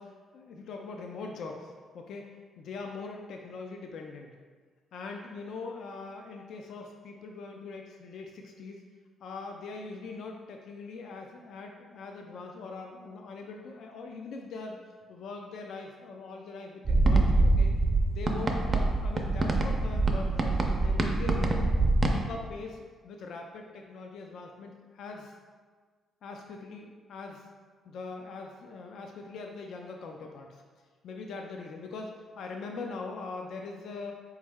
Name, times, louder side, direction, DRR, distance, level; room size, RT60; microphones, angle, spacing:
voice 1, 0.0-4.3 4.9-8.8 9.2-14.8 15.1-17.7 18.1-21.7 22.1-25.3 26.2-27.5 27.8-30.6 31.0-34.1, left 4 dB, 70° left, 2 dB, 0.4 m, -42 dB
sound 1, 16.9-22.2, right 2 dB, 35° right, 0.5 m, -25 dB
4.3 x 3.1 x 3.5 m, 1.5 s
cardioid pair, 90°, 0 cm